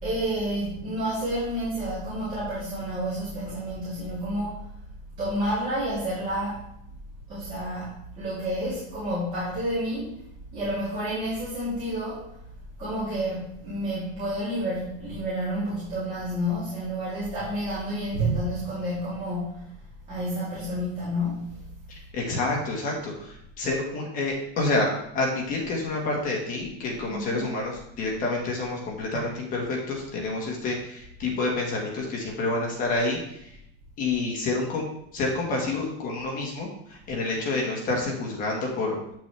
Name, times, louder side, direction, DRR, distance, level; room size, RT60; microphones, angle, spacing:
voice 1, 0.0-4.7 5.2-6.6 7.3-10.1 10.5-12.3 12.8-19.7 20.1-21.6 27.1-27.5, equal, 25° right, -11 dB, 3.2 m, -30 dB
voice 2, 22.1-24.9 25.1-27.7 28.0-33.2 34.0-34.8 35.1-36.7 37.1-39.0, left 2 dB, 25° left, -1 dB, 1.5 m, -28 dB
8.9 x 6.2 x 3.3 m, 0.76 s
supercardioid pair, 170°, 31 cm